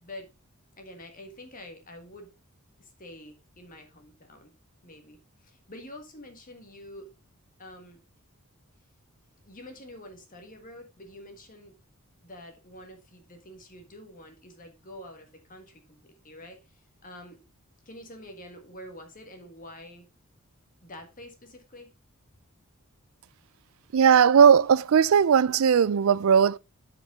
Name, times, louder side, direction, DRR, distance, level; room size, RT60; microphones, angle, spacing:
voice 1, 0.8-2.3 2.8-4.5 4.8-7.1 7.6-8.0 9.4-11.7 12.2-17.4 17.8-20.0 20.8-21.9, left 1 dB, 40° left, 1.5 m, -47 dB
voice 2, 23.9-26.6, right 7 dB, 70° right, 0.4 m, -18 dB
11.0 x 5.1 x 3.6 m
head